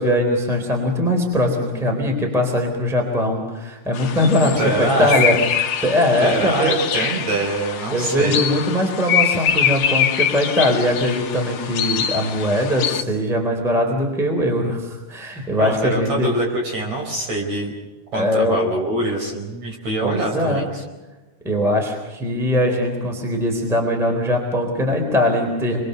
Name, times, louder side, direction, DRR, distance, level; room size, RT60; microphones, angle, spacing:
voice 1, 0.0-6.7 7.9-16.3 18.1-18.6 20.0-20.7 21.4-25.8, left 1 dB, ahead, 3 dB, 3.2 m, -21 dB
sound 1, 3.9-13.0, left 8 dB, 70° left, 1.5 m, -24 dB
voice 2, 4.6-5.1 6.2-8.4 15.6-17.7 18.1-20.8, right 2 dB, 45° right, 1 dB, 5.6 m, -24 dB
27.5 x 22.5 x 6.8 m, 1.2 s
omnidirectional pair, 4.6 m